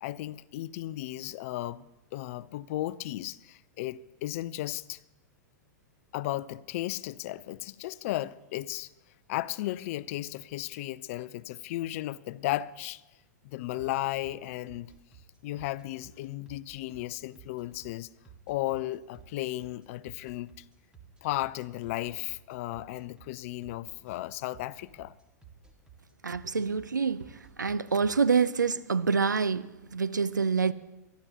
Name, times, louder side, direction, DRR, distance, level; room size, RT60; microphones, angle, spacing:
voice 1, 0.0-5.0 6.1-8.9 9.3-13.0 13.4-14.9 15.4-18.1 18.5-20.6 21.2-25.1, left 16 dB, 50° left, 0.5 m, -35 dB
sound 1, 13.8-28.1, right 7 dB, 10° right, 1.8 m, -54 dB
voice 2, 26.2-30.7, right 5 dB, 85° right, 0.6 m, -27 dB
23.0 x 12.5 x 2.8 m
figure-of-eight pair, 105°, 10 cm